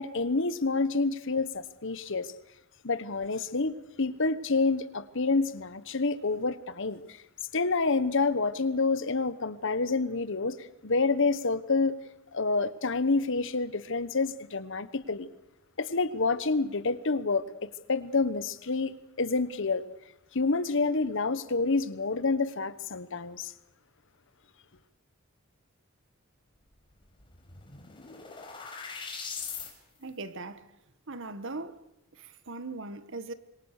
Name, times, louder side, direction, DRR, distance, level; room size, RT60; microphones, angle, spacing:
voice 1, 0.0-2.3 2.8-7.2 7.5-11.9 12.3-15.3 15.8-19.8 20.3-23.5, left 3 dB, 65° left, 1.3 m, -28 dB
sound 1, 26.8-26.9 27.2-29.7, left 5 dB, 25° left, 4.9 m, -40 dB
voice 2, 30.0-30.8 31.1-31.8 32.1-33.3, right 3 dB, 65° right, 1.4 m, -39 dB
26.0 x 23.0 x 6.6 m
head